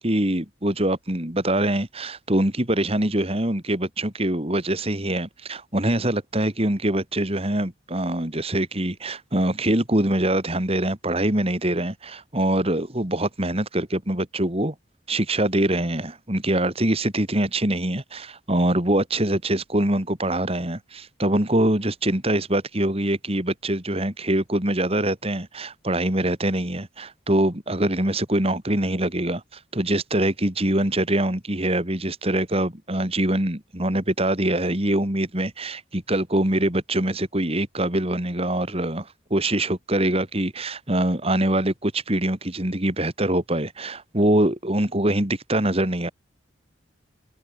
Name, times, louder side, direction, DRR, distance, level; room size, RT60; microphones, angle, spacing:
voice 1, 0.0-14.7 15.1-46.1, right 1 dB, 35° right, 3.4 m, -24 dB
head